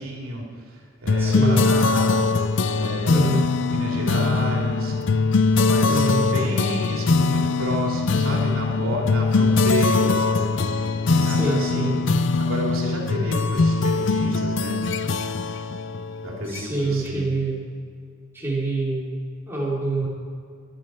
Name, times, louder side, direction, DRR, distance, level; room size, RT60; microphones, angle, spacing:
voice 1, 0.0-2.3 2.7-4.9 5.6-10.5 11.1-11.9 12.4-14.8 16.2-17.3, right 1 dB, 80° right, -1 dB, 3.1 m, -31 dB
sound 1, 1.1-16.9, left 4 dB, 60° left, 0.5 m, -22 dB
voice 2, 1.2-1.6 3.1-3.5 5.9-6.3 11.2-12.0 16.5-17.6 18.3-19.2 19.5-20.1, right 2 dB, 10° right, -7 dB, 3.4 m, -26 dB
21.5 x 8.9 x 4.6 m, 2.2 s
head